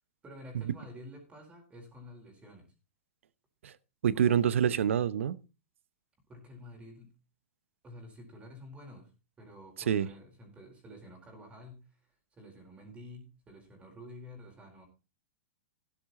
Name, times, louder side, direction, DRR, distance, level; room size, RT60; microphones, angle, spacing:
voice 1, 0.2-2.7 4.1-4.3 6.3-7.1 7.8-9.1 9.4-14.9, left 1 dB, 15° right, 4.5 m, -50 dB
voice 2, 4.0-5.4 9.9-10.1, right 9 dB, 80° right, 0.9 m, -26 dB
12.5 x 10.5 x 4.2 m
hypercardioid pair, 130°, 7 cm